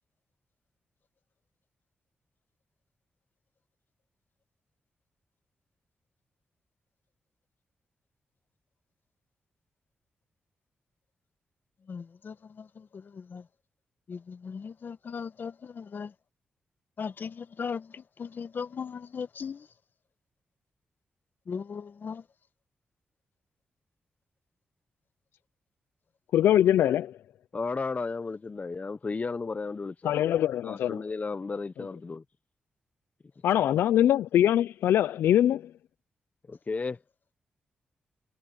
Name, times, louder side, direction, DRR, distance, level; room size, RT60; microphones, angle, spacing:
voice 1, 11.9-13.4 14.1-16.1 17.0-19.7 21.5-22.2, left 6 dB, 60° left, 1.8 m, -38 dB
voice 2, 26.3-27.2 30.0-31.0 33.4-35.7, left 11 dB, 85° left, 0.5 m, -23 dB
voice 3, 27.5-30.2 30.6-32.2 36.5-37.0, left 4 dB, 40° left, 0.8 m, -33 dB
supercardioid pair, 45°, 4 cm